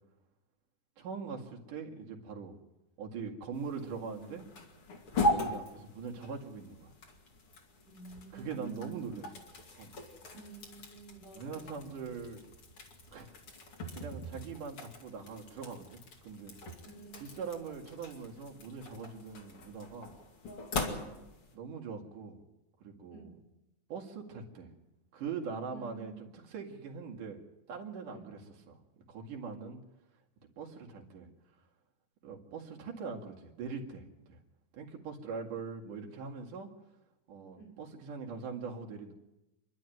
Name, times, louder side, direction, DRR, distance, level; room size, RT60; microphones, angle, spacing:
voice 1, 1.0-2.6 3.0-4.4 5.2-6.9 8.3-9.3 9.8-10.0 11.3-12.4 13.1-13.3 13.9-16.5 17.2-20.1 21.5-22.4 22.8-23.3 23.9-24.7 25.1-27.4 27.7-28.4 28.7-28.8 29.1-29.8 30.6-31.3 32.2-34.4 34.7-36.7 37.3-39.1, right 5 dB, 85° right, 1 dB, 3.8 m, -42 dB
sound 1, 3.5-21.6, left 1 dB, 45° left, 3.2 m, -40 dB
voice 2, 7.9-9.2 10.3-12.2 16.8-17.6 20.4-21.3 23.1-23.4 25.7-26.2 28.1-28.3 37.5-37.8, right 5 dB, 85° left, 0 dB, 5.7 m, -50 dB
27.5 x 12.0 x 9.3 m, 0.97 s
omnidirectional pair, 3.6 m